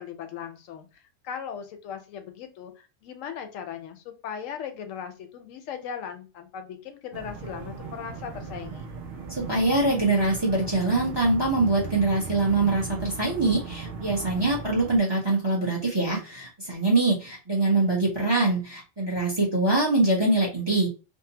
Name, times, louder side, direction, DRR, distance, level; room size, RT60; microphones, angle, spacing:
voice 1, 0.0-8.9, left 8 dB, 80° left, 6 dB, 1.0 m, -38 dB
sound 1, 7.1-15.0, right 4 dB, 60° right, 0.6 m, -37 dB
voice 2, 9.3-20.9, right 2 dB, 25° right, -4 dB, 0.7 m, -24 dB
2.7 x 2.0 x 2.7 m, 0.31 s
omnidirectional pair, 1.3 m